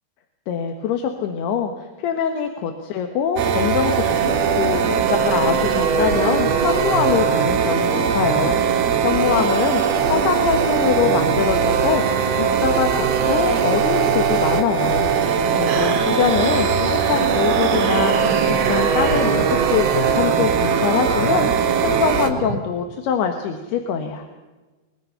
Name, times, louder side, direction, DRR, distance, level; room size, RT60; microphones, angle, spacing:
voice 1, 0.5-9.8 10.1-18.1 18.5-24.3, left 7 dB, 70° left, 5 dB, 3.1 m, -24 dB
sound 1, 3.4-22.3, right 6 dB, 65° right, 3.3 m, -20 dB
sound 2, 15.7-22.6, right 5 dB, 85° right, 1.1 m, -28 dB
23.5 x 21.0 x 5.7 m, 1.2 s
omnidirectional pair, 5.2 m